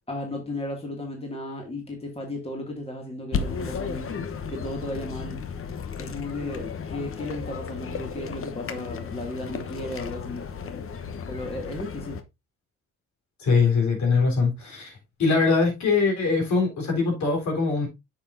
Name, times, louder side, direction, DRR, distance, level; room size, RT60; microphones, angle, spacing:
voice 1, 0.1-4.1 4.5-5.4 6.0-10.4 11.3-12.2, left 1 dB, 20° left, 2.2 m, -34 dB
sound 1, 3.3-12.2, left 6 dB, 45° left, 1.0 m, -34 dB
voice 2, 13.4-14.9 15.2-17.9, left 4 dB, 65° left, 3.8 m, -22 dB
8.6 x 6.2 x 2.6 m
cardioid pair, 90°, 30 cm